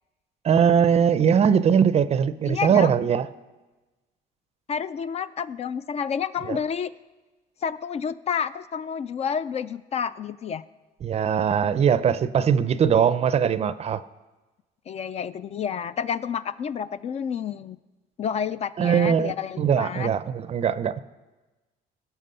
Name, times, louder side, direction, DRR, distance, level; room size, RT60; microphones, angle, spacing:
voice 1, 0.4-3.3 6.5-6.6 11.0-14.0 18.8-21.0, right 7 dB, 40° right, 0.5 m, -21 dB
voice 2, 2.5-2.9 4.7-6.9 7.6-10.6 14.9-17.8 18.2-20.1, left 7 dB, 40° left, 0.3 m, -30 dB
16.5 x 6.0 x 5.5 m
cardioid pair, 110°, 17 cm